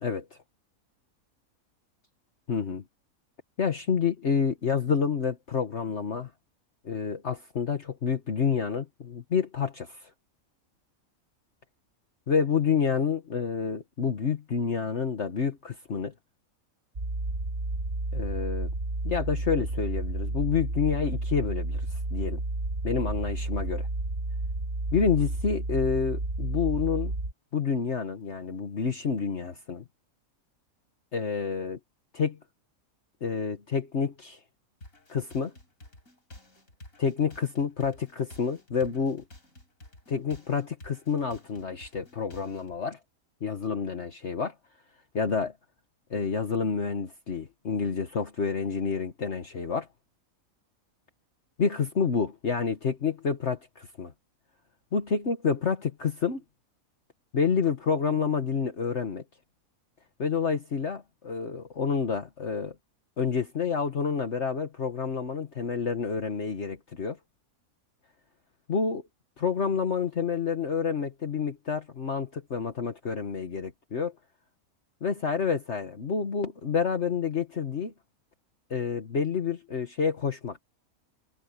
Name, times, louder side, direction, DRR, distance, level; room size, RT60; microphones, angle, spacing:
voice 1, 2.5-2.8 3.6-6.3 6.8-10.1 12.3-16.1 18.1-18.7 19.0-22.4 22.8-23.9 24.9-27.1 27.5-29.8 31.1-31.8 32.1-32.4 33.2-34.4 35.1-35.5 37.0-39.2 40.1-43.0 43.4-44.5 45.1-45.5 46.1-49.9 51.6-54.1 54.9-56.4 57.3-59.2 60.2-62.7 63.2-67.2 68.7-69.0 69.4-74.1 75.0-77.9 78.7-80.6, left 6 dB, 50° left, 1.7 m, -28 dB
sound 1, 17.0-27.3, right 2 dB, 40° right, 1.9 m, -31 dB
sound 2, 34.8-42.8, left 1 dB, 70° left, 7.2 m, -51 dB
omnidirectional pair, 1.5 m